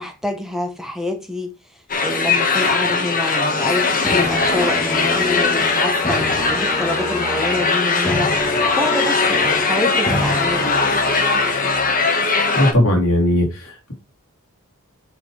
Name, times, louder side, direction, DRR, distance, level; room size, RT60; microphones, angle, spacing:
voice 1, 0.0-10.7, left 1 dB, ahead, 1.1 m, -27 dB
sound 1, 1.9-12.7, left 4 dB, 40° left, 1.6 m, -20 dB
sound 2, 4.0-12.0, left 1 dB, 15° left, 1.9 m, -27 dB
voice 2, 12.5-13.9, left 1 dB, 70° left, 3.3 m, -18 dB
7.6 x 5.2 x 4.9 m
head